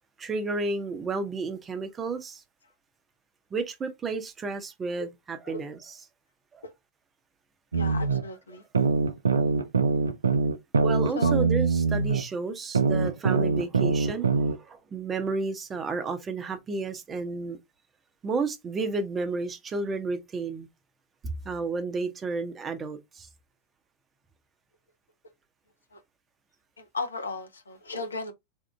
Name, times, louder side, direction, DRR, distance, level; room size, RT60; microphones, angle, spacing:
voice 1, 0.2-2.4 3.5-5.8 6.5-6.6 10.8-17.6 18.2-20.7 21.2-23.3, right 3 dB, 20° right, 0.7 m, -32 dB
voice 2, 7.7-8.6 11.2-11.3 25.9-26.0 26.8-28.3, left 3 dB, 75° left, 0.7 m, -35 dB
sound 1, 7.7-8.2 8.7-12.2 12.7-14.6, right 4 dB, 75° right, 0.4 m, -23 dB
3.5 x 2.5 x 3.2 m
figure-of-eight pair, 90°, 0 cm